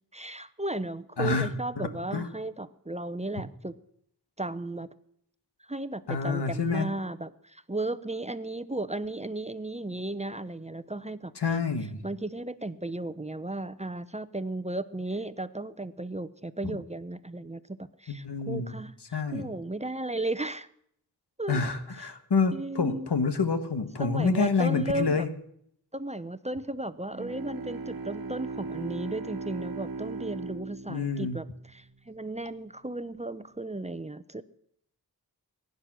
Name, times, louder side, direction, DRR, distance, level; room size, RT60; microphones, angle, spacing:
voice 1, 0.1-3.8 4.4-4.9 5.7-11.6 12.0-20.7 21.4-21.6 22.5-23.1 24.0-25.3 25.9-34.4, right 2 dB, 15° right, 14 dB, 0.8 m, -35 dB
voice 2, 1.2-2.3 6.1-6.9 11.4-12.0 18.1-18.7 19.1-19.5 21.5-25.3 30.9-31.4, left 4 dB, 85° left, 9 dB, 1.5 m, -28 dB
Bowed string instrument, 27.1-32.1, right 4 dB, 60° right, 1.3 m, -38 dB
22.5 x 9.8 x 6.2 m, 0.71 s
wide cardioid pair, 40°, 39 cm